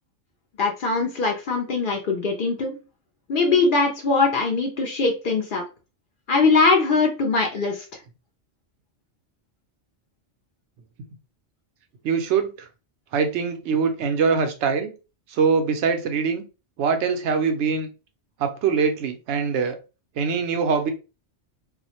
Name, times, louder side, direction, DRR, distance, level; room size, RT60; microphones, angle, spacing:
voice 1, 0.6-2.8 3.3-5.6 6.3-7.9, left 4 dB, 60° left, 2 dB, 0.6 m, -21 dB
voice 2, 12.0-12.7 13.1-14.9 15.3-16.4 16.8-17.9 18.4-19.8 20.2-20.9, right 5 dB, 80° right, 7 dB, 0.8 m, -23 dB
2.4 x 2.0 x 2.7 m, 0.31 s
omnidirectional pair, 1.2 m